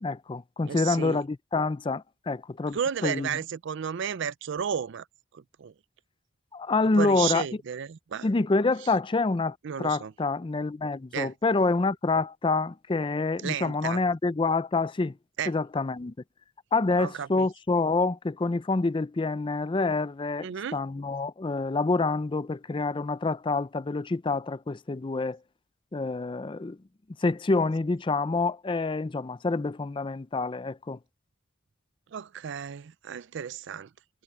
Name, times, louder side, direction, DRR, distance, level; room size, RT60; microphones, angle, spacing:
voice 1, 0.0-3.3 6.5-7.4 8.2-15.1 15.5-16.1 16.7-25.4 25.9-26.8 27.2-31.0, left 3 dB, 25° left, 0.4 m, -27 dB
voice 2, 0.7-1.2 2.7-5.1 5.3-5.7 7.0-8.3 9.6-10.1 11.1-11.3 13.4-14.0 15.4-15.5 17.0-17.5 20.4-20.8 32.1-33.9, right 8 dB, 60° right, 0.4 m, -33 dB
head